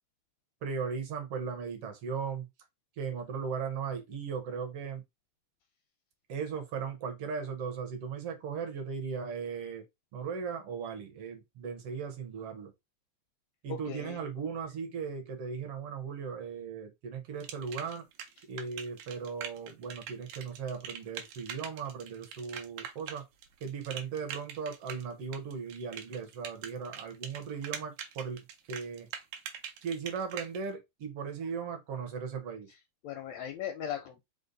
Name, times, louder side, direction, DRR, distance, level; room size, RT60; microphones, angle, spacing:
voice 1, 0.6-2.5 3.0-5.0 6.3-9.8 10.1-12.7 13.6-18.0 18.5-23.3 23.6-29.1 29.8-32.7, right 6 dB, 65° right, 1.6 m, -37 dB
voice 2, 13.7-14.2 33.0-34.3, left 8 dB, 80° left, 1.6 m, -38 dB
sound 1, 17.4-30.6, right 8 dB, 85° right, 2.2 m, -43 dB
5.2 x 2.1 x 3.8 m
omnidirectional pair, 3.5 m